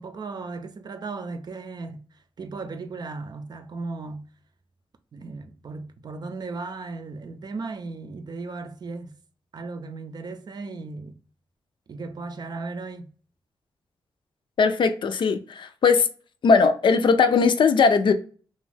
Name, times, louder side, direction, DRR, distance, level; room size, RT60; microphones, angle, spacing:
voice 1, 0.0-4.3 5.1-9.2 9.5-11.2 11.9-13.1, right 3 dB, 50° right, 0.4 m, -36 dB
voice 2, 14.6-16.1 16.4-18.1, left 5 dB, 60° left, 0.4 m, -19 dB
2.5 x 2.3 x 3.2 m
cardioid pair, 65°, 9 cm